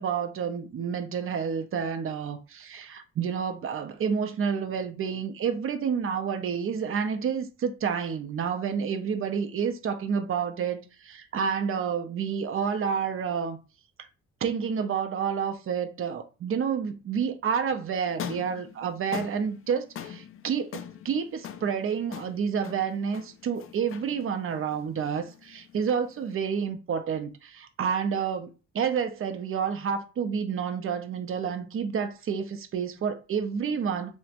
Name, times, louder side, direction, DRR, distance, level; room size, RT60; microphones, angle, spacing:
voice 1, 0.0-13.6 14.4-34.2, right 7 dB, 45° right, 0.6 m, -29 dB
sound 1, 18.1-26.3, left 9 dB, 45° left, 0.4 m, -42 dB
3.0 x 2.2 x 2.5 m
cardioid pair, 90°, 30 cm